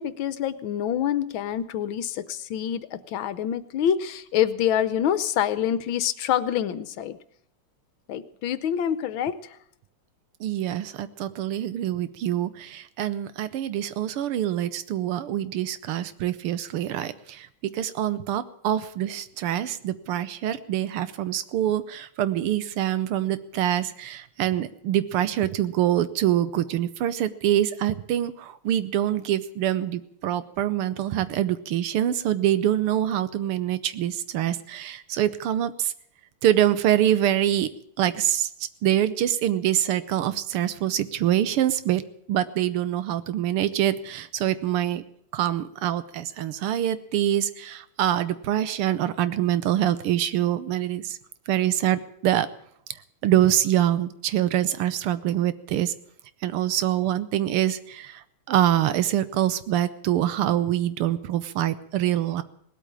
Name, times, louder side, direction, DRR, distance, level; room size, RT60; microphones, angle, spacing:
voice 1, 0.0-7.2 8.1-9.6, left 9 dB, 70° left, 14 dB, 1.5 m, -26 dB
voice 2, 10.4-35.9 36.4-37.7 38.0-38.5 38.8-42.0 42.3-45.0 45.3-51.2 51.5-52.5 53.2-55.9 56.4-58.2 58.5-62.4, right 12 dB, 90° right, 14 dB, 1.8 m, -25 dB
18.5 x 8.5 x 8.8 m, 0.69 s
omnidirectional pair, 2.4 m